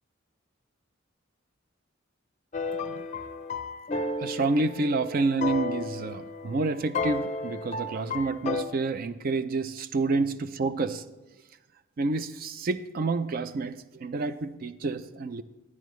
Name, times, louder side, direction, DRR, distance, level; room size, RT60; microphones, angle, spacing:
sound 1, 2.5-8.6, left 3 dB, 35° left, 0.5 m, -33 dB
voice 1, 4.2-11.0 12.0-15.4, right 3 dB, 45° right, 12 dB, 0.4 m, -29 dB
12.0 x 9.6 x 3.1 m, 1.1 s
head